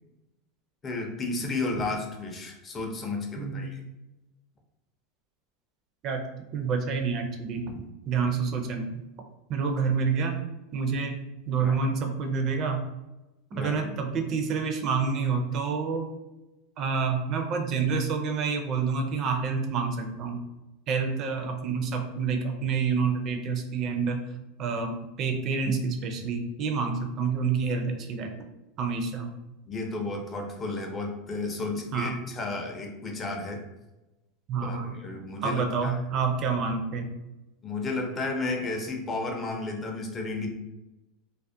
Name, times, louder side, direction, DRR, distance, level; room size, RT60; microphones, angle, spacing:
voice 1, 0.8-3.8 11.6-11.8 13.5-13.9 29.7-33.6 34.6-35.9 37.6-40.5, left 3 dB, 25° left, 2 dB, 0.5 m, -33 dB
voice 2, 3.4-3.7 6.0-6.2 6.5-9.0 9.5-10.4 10.7-11.2 11.5-12.9 13.5-16.1 16.8-20.4 20.9-24.2 24.6-28.3 28.8-29.3 31.9-32.2 34.5-35.0 35.4-37.1, right 5 dB, 40° right, 5 dB, 0.4 m, -28 dB
2.4 x 2.0 x 2.6 m, 1.0 s
supercardioid pair, 135°, 0 cm